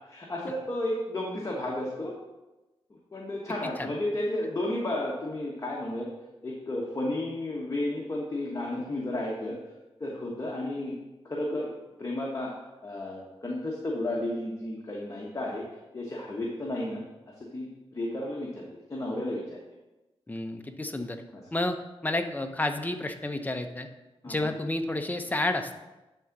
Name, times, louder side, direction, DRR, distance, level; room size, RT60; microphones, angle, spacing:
voice 1, 0.1-2.1 3.1-6.1 6.4-9.6 10.0-10.9 11.2-11.7 12.0-12.5 12.8-15.6 15.9-17.0 17.3-18.6 18.9-19.6 21.3-21.4 24.2-24.5, left 1 dB, 30° left, -3 dB, 1.3 m, -32 dB
voice 2, 20.3-21.2 21.5-21.8 22.0-23.9 24.3-25.7, left 2 dB, 15° left, 6 dB, 0.8 m, -30 dB
10.5 x 3.8 x 5.9 m, 1.1 s
wide cardioid pair, 100°, 10 cm